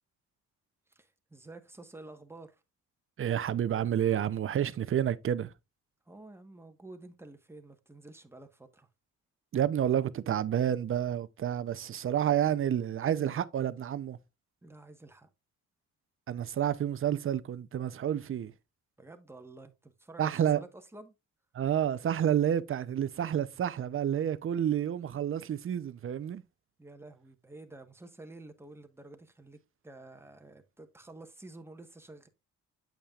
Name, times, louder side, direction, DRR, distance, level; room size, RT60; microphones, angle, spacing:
voice 1, 0.9-2.6 6.1-8.9 14.6-15.3 19.0-21.1 26.8-32.3, right 2 dB, 10° right, 1.3 m, -50 dB
voice 2, 3.2-5.5 9.5-14.2 16.3-18.5 20.2-20.6 21.5-26.4, right 10 dB, 45° right, 0.7 m, -29 dB
8.5 x 7.4 x 2.4 m
cardioid pair, 90°, 30 cm